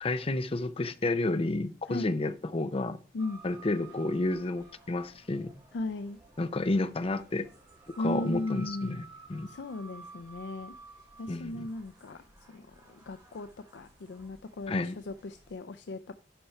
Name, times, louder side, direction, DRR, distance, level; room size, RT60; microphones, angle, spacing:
voice 1, 0.0-3.0 3.4-5.5 6.4-7.5 8.0-9.5 11.3-11.7 14.7-15.0, left 2 dB, 35° left, 0.6 m, -31 dB
sound 1, 3.2-15.6, right 4 dB, 25° right, 4.1 m, -53 dB
voice 2, 5.7-6.2 8.0-9.0 9.5-10.7 11.2-12.2 12.5-16.1, left 2 dB, 75° left, 0.4 m, -37 dB
10.5 x 5.5 x 4.4 m
head